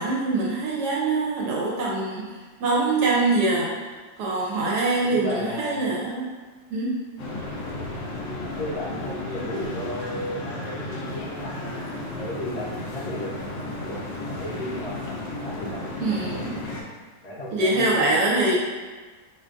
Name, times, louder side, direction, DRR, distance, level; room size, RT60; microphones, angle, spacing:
voice 1, 0.0-2.2 2.6-6.3 6.7-6.9 16.0-16.6 17.5-18.6, right 2 dB, 70° right, -4 dB, 1.1 m, -24 dB
voice 2, 5.0-5.8 8.6-11.8 12.1-15.0 15.4-16.5 17.2-18.6, left 1 dB, 65° left, -7 dB, 1.1 m, -35 dB
sound 1, 7.2-16.8, left 2 dB, 90° left, 0.6 m, -33 dB
4.4 x 2.4 x 2.4 m, 1.3 s
omnidirectional pair, 2.0 m